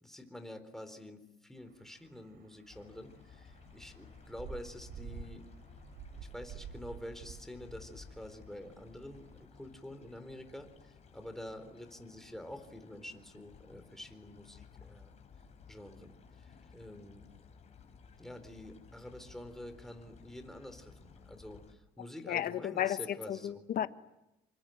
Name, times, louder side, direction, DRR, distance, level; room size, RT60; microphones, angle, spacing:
voice 1, 0.0-1.2 1.5-3.1 3.7-5.4 6.3-9.3 9.6-10.7 11.1-15.1 15.7-16.1 16.7-17.2 18.2-21.6 22.0-23.6, left 1 dB, ahead, 4.1 m, -47 dB
sound 1, 1.6-9.4, right 8 dB, 65° right, 3.5 m, -51 dB
sound 2, 2.7-21.7, left 5 dB, 40° left, 4.5 m, -56 dB
voice 2, 22.3-23.9, left 11 dB, 60° left, 1.5 m, -33 dB
28.0 x 24.5 x 7.9 m
cardioid pair, 110°, 17 cm